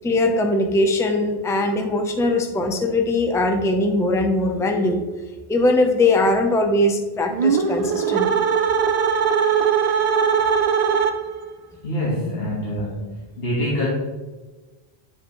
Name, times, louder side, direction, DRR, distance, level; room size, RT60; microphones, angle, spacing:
voice 1, 0.0-5.0 5.5-8.4, left 2 dB, 5° left, 3 dB, 0.5 m, -20 dB
sound 1, 7.3-11.5, right 6 dB, 55° right, 0.4 m, -20 dB
voice 2, 11.8-13.9, equal, 70° left, -6 dB, 1.6 m, -25 dB
10.0 x 5.1 x 3.1 m, 1.2 s
omnidirectional pair, 1.1 m